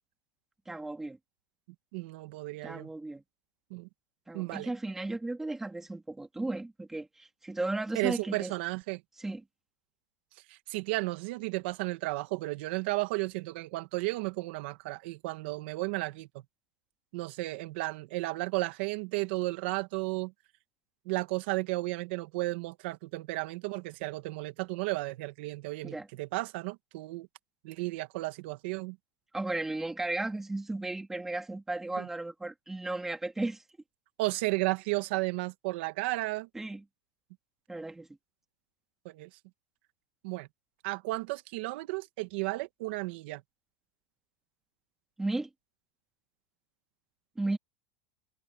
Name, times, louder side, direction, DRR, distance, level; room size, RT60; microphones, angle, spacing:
voice 1, 0.7-1.2 2.6-3.2 4.3-8.5 9.2-9.4 25.8-26.1 29.3-33.6 36.5-36.8 37.7-38.1 45.2-45.5 47.4-47.6, right 2 dB, 5° right, 2.5 m, -35 dB
voice 2, 1.9-2.9 3.7-3.9 4.3-4.7 7.9-9.0 10.5-16.4 17.1-20.3 21.1-27.3 27.6-29.0 32.0-32.1 34.2-36.5 39.1-39.3 40.2-40.5 40.8-43.4, right 22 dB, 55° right, 1.9 m, -33 dB
supercardioid pair, 175°, 7 cm